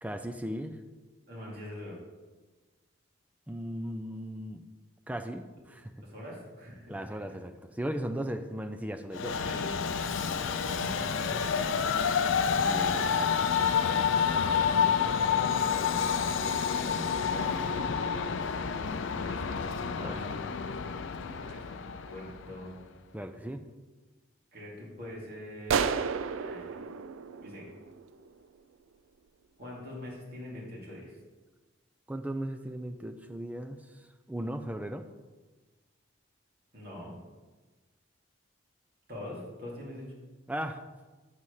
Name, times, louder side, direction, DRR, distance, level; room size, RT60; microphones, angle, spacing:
voice 1, 0.0-0.8 3.5-4.6 5.1-5.9 6.9-9.4 12.6-13.1 19.9-20.2 23.1-23.6 32.1-33.8 34.3-35.0 40.5-40.8, right 1 dB, 5° right, 7 dB, 0.4 m, -37 dB
voice 2, 1.3-2.0 6.0-7.2 9.4-9.7 10.4-11.4 12.6-15.8 16.7-17.6 19.2-19.6 19.9-20.6 21.4-21.7 22.1-22.8 24.5-25.8 26.4-26.9 27.4-27.7 29.6-31.2 36.7-37.2 39.1-40.0, left 1 dB, 50° right, -4 dB, 2.5 m, -44 dB
Train, 9.1-22.6, left 6 dB, 70° left, 0.4 m, -29 dB
sound 1, 25.7-28.3, right 6 dB, 80° right, 0.4 m, -32 dB
7.3 x 4.2 x 6.5 m, 1.3 s
head